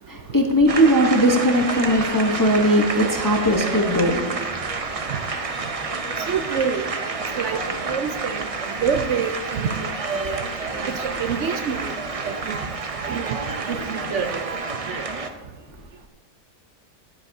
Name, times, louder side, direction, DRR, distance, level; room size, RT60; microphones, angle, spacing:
voice 1, 0.1-5.2 5.7-6.2 7.3-7.4, equal, 20° left, 2 dB, 0.7 m, -20 dB
sound 1, 0.7-15.3, right 4 dB, 40° right, 0.5 m, -29 dB
voice 2, 6.3-6.8 7.4-7.6 7.9-8.4 8.8-10.4 10.9-11.9 12.3-12.6 13.1-13.4 13.7-14.5, right 6 dB, 65° right, 8 dB, 0.9 m, -26 dB
14.0 x 11.0 x 2.7 m, 1.2 s
omnidirectional pair, 1.5 m